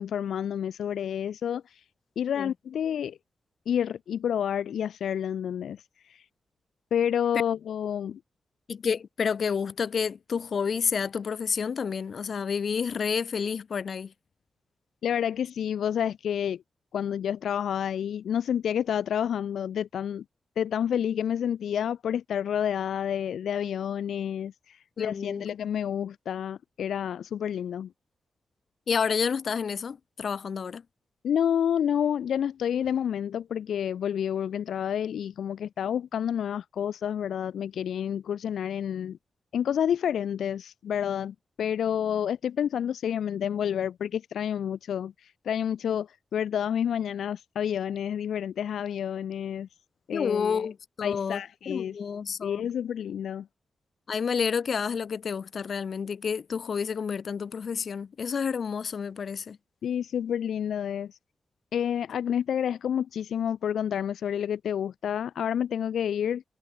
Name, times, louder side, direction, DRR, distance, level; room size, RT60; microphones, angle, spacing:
voice 1, 0.0-1.6 2.2-3.2 3.7-5.8 6.9-8.2 15.0-16.6 16.9-20.2 20.6-27.9 31.2-39.2 39.5-45.1 45.4-49.7 50.1-50.7 51.0-51.9 52.4-53.5 59.8-61.1 61.7-66.4, left 9 dB, 90° left, 1.2 m, -29 dB
voice 2, 8.7-14.1 25.0-25.5 28.9-30.8 50.1-52.7 54.1-59.6, left 6 dB, 65° left, 1.7 m, -30 dB
cardioid pair, 65°, 0 cm